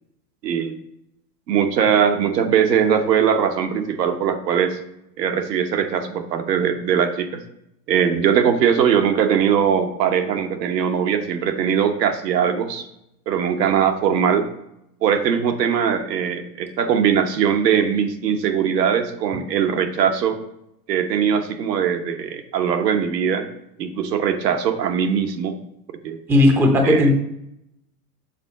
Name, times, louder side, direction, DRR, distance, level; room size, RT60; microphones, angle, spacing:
voice 1, 0.4-0.8 1.5-4.8 5.2-7.4 7.9-12.9 13.3-14.4 15.0-20.4 20.9-23.5 23.8-25.6 26.0-26.2 26.8-27.1, right 8 dB, 75° right, 5 dB, 1.1 m, -20 dB
voice 2, 26.3-27.1, left 1 dB, 5° right, 3 dB, 0.5 m, -15 dB
7.0 x 3.7 x 5.4 m, 0.81 s
hypercardioid pair, 125°, 49 cm